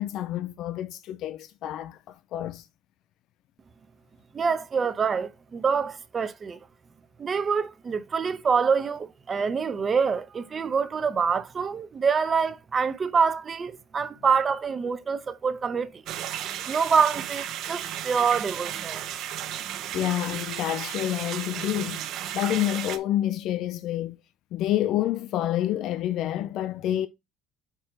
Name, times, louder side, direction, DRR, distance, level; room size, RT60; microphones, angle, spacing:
voice 1, 0.0-2.7 19.9-22.0 22.3-24.2 24.5-27.1, left 13 dB, 65° left, 0.4 m, -28 dB
voice 2, 4.3-6.6 7.2-16.0 16.7-19.1, right 6 dB, 35° right, 0.7 m, -26 dB
sound 1, 16.1-23.0, right 11 dB, 60° right, 1.0 m, -34 dB
5.9 x 4.5 x 4.5 m
supercardioid pair, 90°, 0 cm